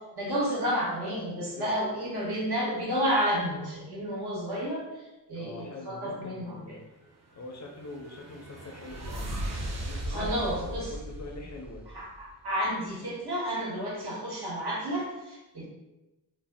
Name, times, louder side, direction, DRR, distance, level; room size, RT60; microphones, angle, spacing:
voice 1, 0.2-5.0 5.3-6.8 9.7-10.9 11.9-15.7, equal, 65° right, -5 dB, 1.1 m, -31 dB
voice 2, 5.3-6.8 7.4-11.8, left 2 dB, 45° left, 0 dB, 0.4 m, -43 dB
sound 1, 7.4-12.3, right 1 dB, 40° right, 0.4 m, -37 dB
2.6 x 2.0 x 3.3 m, 1.0 s
wide cardioid pair, 140°, 42 cm